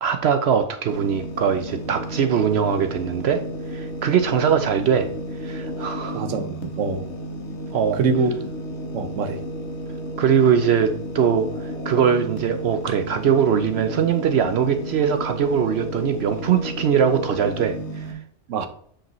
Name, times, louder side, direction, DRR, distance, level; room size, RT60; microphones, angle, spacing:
voice 1, 0.0-3.4 3.7-5.1 5.4-6.3 7.7-8.0 10.2-18.2, right 7 dB, 65° right, 7 dB, 0.8 m, -21 dB
sound 1, 0.9-18.1, equal, 65° left, 1.4 m, -32 dB
voice 2, 6.1-7.1 7.9-8.3 8.9-9.4 18.5-18.7, right 4 dB, 80° right, 9 dB, 1.1 m, -24 dB
8.7 x 5.1 x 3.0 m, 0.62 s
omnidirectional pair, 1.3 m